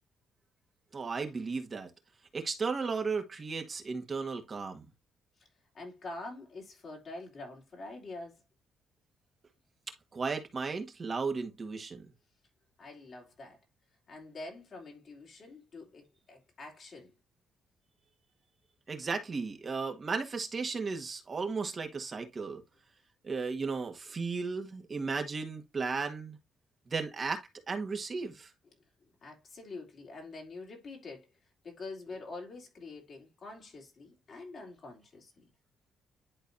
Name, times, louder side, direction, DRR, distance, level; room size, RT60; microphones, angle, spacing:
voice 1, 0.9-1.9 2.3-4.8 10.1-12.0 18.9-22.6 23.2-26.4 26.9-28.5, right 4 dB, 35° right, 1.6 m, -35 dB
voice 2, 5.7-8.4 12.8-13.6 14.1-17.1 29.2-31.3 31.6-35.5, left 3 dB, 50° left, 3.2 m, -46 dB
11.0 x 4.0 x 2.6 m
cardioid pair, 90°, 0 cm